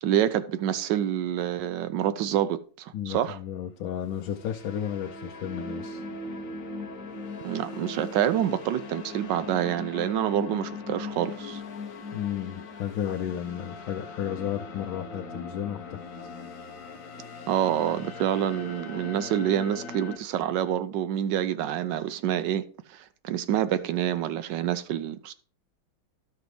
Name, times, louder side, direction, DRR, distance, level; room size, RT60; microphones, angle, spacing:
voice 1, 0.0-3.4 7.4-11.6 17.5-22.6 22.9-25.3, right 10 dB, 70° right, 1.1 m, -27 dB
voice 2, 2.9-6.0 12.1-16.0, left 10 dB, 75° left, 1.4 m, -33 dB
sound 1, 3.9-20.2, left 3 dB, 50° left, 1.1 m, -40 dB
12.5 x 6.0 x 3.2 m
omnidirectional pair, 2.3 m